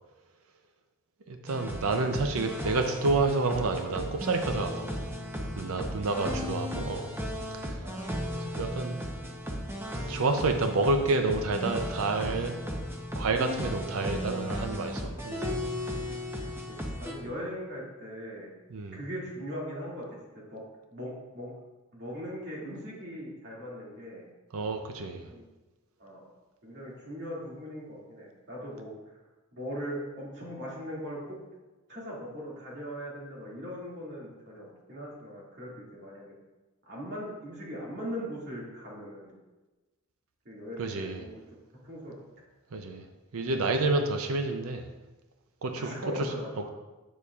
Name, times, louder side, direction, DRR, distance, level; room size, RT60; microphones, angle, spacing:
voice 1, 1.3-5.1 5.6-7.1 7.6-7.8 8.3-9.0 10.1-12.5 13.2-15.4 18.7-19.0 24.5-25.3 40.8-41.2 42.7-43.0 43.3-44.9 45.6-45.9, right 3 dB, 80° right, 6 dB, 0.6 m, -29 dB
sound 1, 1.5-17.2, equal, 10° right, 0.8 m, -35 dB
voice 2, 16.4-18.5 18.9-20.6 20.9-21.5 21.9-24.3 25.2-25.4 26.0-26.3 26.6-28.9 29.5-31.4 31.9-36.4 36.9-39.3 40.4-41.4 41.8-42.2 45.7-46.7, equal, 55° right, -5 dB, 2.3 m, -40 dB
8.3 x 6.9 x 2.4 m, 1.1 s
head